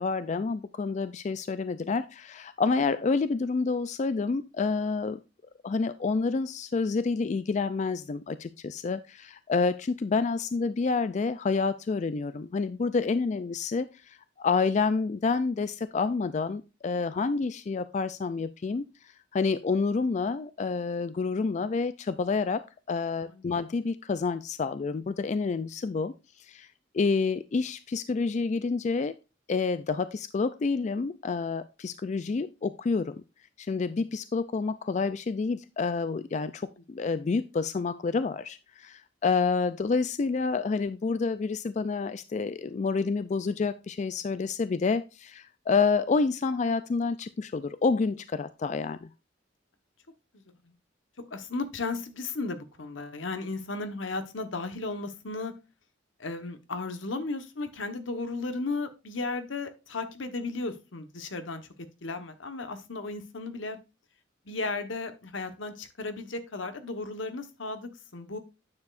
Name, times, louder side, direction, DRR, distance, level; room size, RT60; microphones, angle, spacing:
voice 1, 0.0-5.2 5.6-26.7 26.9-29.1 29.5-33.2 33.6-49.1, left 4 dB, 40° left, 13 dB, 0.3 m, -28 dB
voice 2, 51.3-55.5 56.2-61.7 62.0-63.8 64.4-68.4, left 3 dB, 80° left, 9 dB, 1.2 m, -35 dB
9.5 x 6.8 x 2.5 m, 0.28 s
head